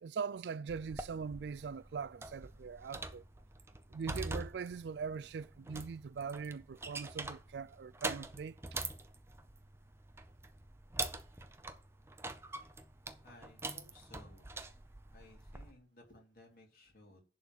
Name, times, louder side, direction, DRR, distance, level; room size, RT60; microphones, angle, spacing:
voice 1, 0.0-3.2 3.9-8.6, right 5 dB, 75° right, 0.4 m, -41 dB
sound 1, 0.7-15.7, right 3 dB, 15° right, 0.6 m, -45 dB
voice 2, 13.2-14.5 14.7-14.8 15.1-17.2, left 2 dB, 55° left, 3.1 m, -59 dB
11.0 x 4.0 x 7.3 m
head